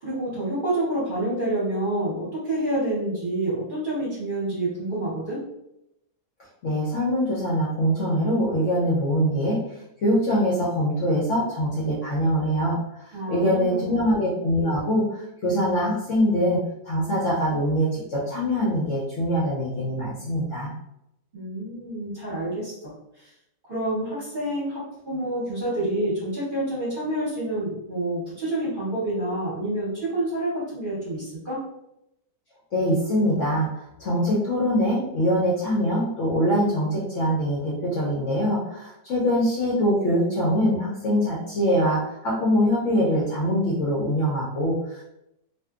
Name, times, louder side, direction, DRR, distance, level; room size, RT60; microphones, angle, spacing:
voice 1, 0.0-5.4 13.1-14.0 21.3-22.9 23.7-24.8 25.1-31.6, right 1 dB, 40° right, -9 dB, 0.9 m, -28 dB
voice 2, 6.6-9.6 10.0-12.8 13.3-16.6 16.8-20.7 32.7-45.0, equal, 60° left, -6 dB, 0.8 m, -23 dB
2.6 x 2.4 x 2.3 m, 0.82 s
omnidirectional pair, 1.8 m